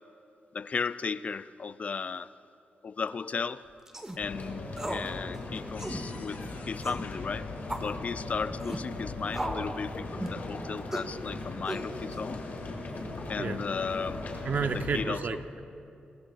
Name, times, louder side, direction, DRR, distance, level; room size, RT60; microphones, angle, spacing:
voice 1, 0.5-2.3 2.8-3.6 4.2-7.5 7.8-12.4 13.3-14.2 14.6-15.2, left 5 dB, 45° left, 15 dB, 0.3 m, -35 dB
sound 1, 3.6-4.0 4.3-8.3 9.4-9.5 9.9-10.8 11.2-12.9 13.8-14.6, left 3 dB, 80° left, 3.6 m, -54 dB
sound 2, 3.9-4.2 4.8-5.1 5.3-5.4 5.8-6.0 6.8-7.1 7.7-7.9 8.6-8.8 9.3-9.7 10.2-10.4 10.9-11.1 11.7-12.1, right 1 dB, 15° right, 1.2 m, -35 dB
sound 3, 4.2-15.0, left 2 dB, 65° left, 2.5 m, -39 dB
voice 2, 14.4-15.6, right 5 dB, 60° right, 8 dB, 0.8 m, -31 dB
20.5 x 19.5 x 2.5 m, 2.6 s
cardioid pair, 85°, 3 cm